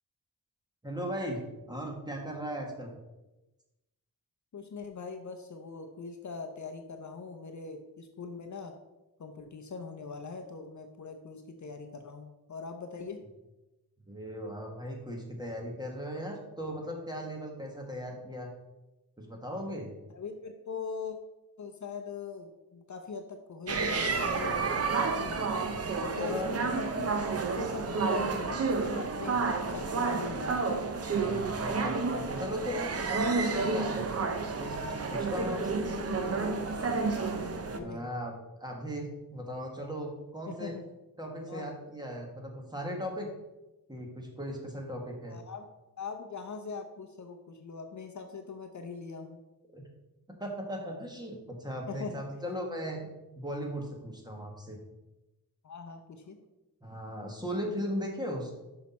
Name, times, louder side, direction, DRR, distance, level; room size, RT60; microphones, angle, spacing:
voice 1, 0.8-1.4 1.7-2.9 14.1-18.5 19.2-19.9 26.2-26.5 31.1-34.0 34.6-35.8 37.8-40.7 41.2-43.3 43.9-45.4 49.7-49.8 50.4-53.0 53.4-54.8 56.8-58.5, equal, 10° right, 0 dB, 1.2 m, -37 dB
voice 2, 4.5-8.7 9.2-13.2 20.1-21.2 21.6-25.4 26.0-27.3 27.6-29.4 29.7-30.6 35.5-35.7 35.9-36.5 36.8-38.1 40.5-40.8 41.5-41.7 45.3-45.7 46.0-49.4 51.9-52.2 55.6-56.4, left 4 dB, 50° left, 5 dB, 0.6 m, -41 dB
sound 1, 23.7-37.8, right 4 dB, 40° right, 0.6 m, -30 dB
6.2 x 5.6 x 4.2 m, 1.0 s
wide cardioid pair, 150°, 37 cm